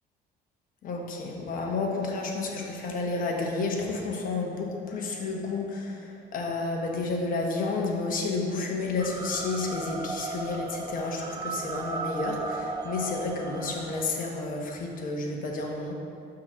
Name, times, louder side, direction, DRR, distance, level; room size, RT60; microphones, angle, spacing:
voice 1, 0.8-16.0, left 3 dB, 55° left, 0 dB, 1.1 m, -31 dB
sound 1, 9.0-14.0, right 3 dB, 25° right, 0.5 m, -36 dB
6.1 x 3.8 x 6.0 m, 2.5 s
cardioid pair, 110°, 17 cm